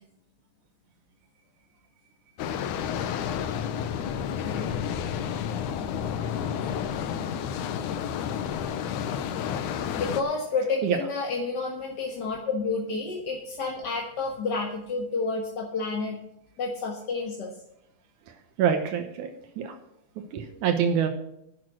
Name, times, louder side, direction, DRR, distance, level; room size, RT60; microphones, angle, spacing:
sound 1, 2.4-10.2, left 8 dB, 90° left, 2.4 m, -30 dB
voice 1, 4.4-4.8 5.4-6.7 9.8-16.2 16.6-17.6, left 3 dB, 45° left, 0 dB, 1.7 m, -31 dB
voice 2, 18.6-19.3 19.6-19.7 20.3-21.1, right 8 dB, 80° right, 6 dB, 2.6 m, -25 dB
11.0 x 8.4 x 6.1 m, 0.78 s
omnidirectional pair, 3.5 m